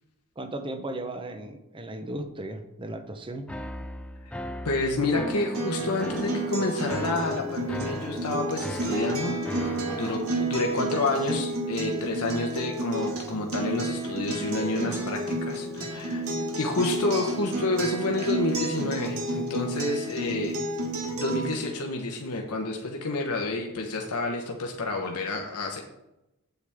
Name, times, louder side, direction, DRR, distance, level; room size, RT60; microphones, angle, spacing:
voice 1, 0.4-3.5, right 1 dB, 25° right, 8 dB, 0.8 m, -36 dB
sound 1, 3.5-10.3, equal, 5° left, 0.4 m, -38 dB
voice 2, 4.6-20.6 21.1-25.8, left 2 dB, 85° left, 2 dB, 1.1 m, -29 dB
Acoustic guitar, 5.5-21.6, right 2 dB, 65° right, 1.8 m, -31 dB
8.3 x 8.1 x 3.5 m, 0.93 s
head